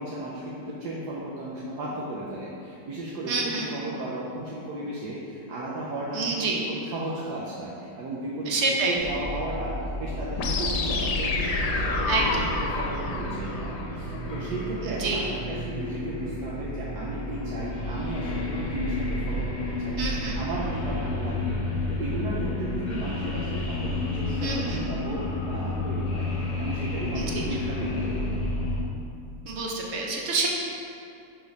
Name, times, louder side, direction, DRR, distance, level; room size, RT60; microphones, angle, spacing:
voice 1, 0.0-28.4, right 1 dB, 75° right, -6 dB, 1.3 m, -35 dB
voice 2, 3.3-3.7 6.1-6.6 8.5-9.0 12.1-12.4 15.0-15.2 20.0-20.4 24.4-24.8 27.2-27.3 29.5-30.5, right 3 dB, 60° right, -1 dB, 0.8 m, -27 dB
sound 1, 9.0-28.8, left 2 dB, 60° left, 0.4 m, -31 dB
sound 2, 10.4-14.4, left 3 dB, 90° left, 1.2 m, -29 dB
5.0 x 3.8 x 5.2 m, 2.6 s
omnidirectional pair, 1.8 m